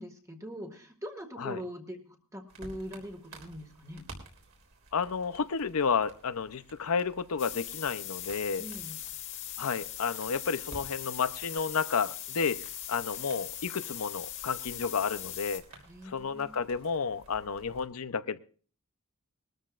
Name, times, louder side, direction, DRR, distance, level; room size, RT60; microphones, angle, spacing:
voice 1, 0.0-4.0 8.6-9.0 15.9-16.5, equal, 15° right, 4 dB, 1.7 m, -42 dB
sound 1, 2.5-17.8, right 2 dB, 65° right, 3.6 m, -54 dB
voice 2, 4.9-8.6 9.6-12.6 12.9-15.6 16.1-18.4, left 5 dB, 75° left, 14 dB, 0.7 m, -31 dB
sound 2, 7.4-15.6, left 12 dB, 55° left, 1.6 m, -40 dB
21.5 x 13.0 x 2.5 m, 0.41 s
head